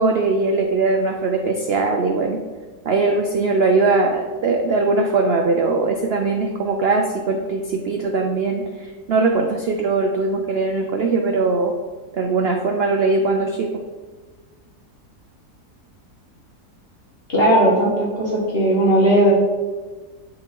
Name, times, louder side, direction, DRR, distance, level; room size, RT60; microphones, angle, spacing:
voice 1, 0.0-2.4 2.9-11.8 12.1-13.8, right 3 dB, 85° right, 3 dB, 0.5 m, -20 dB
voice 2, 17.3-19.3, right 1 dB, 35° left, -5 dB, 1.8 m, -17 dB
8.8 x 4.5 x 3.6 m, 1.4 s
omnidirectional pair, 1.7 m